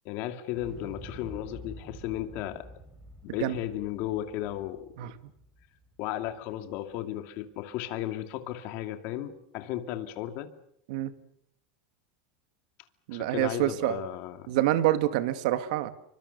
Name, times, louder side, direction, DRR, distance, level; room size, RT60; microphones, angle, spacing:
voice 1, 0.0-2.7 3.3-5.1 6.0-10.5 13.1-14.5, left 12 dB, 45° left, 7 dB, 2.5 m, -35 dB
Explosion, 0.5-6.6 6.9-7.0, equal, 10° right, 3.7 m, -48 dB
voice 2, 13.1-14.0 14.5-15.9, right 14 dB, 65° right, 11 dB, 1.9 m, -26 dB
28.0 x 24.0 x 6.9 m, 0.72 s
supercardioid pair, 160°, 4 cm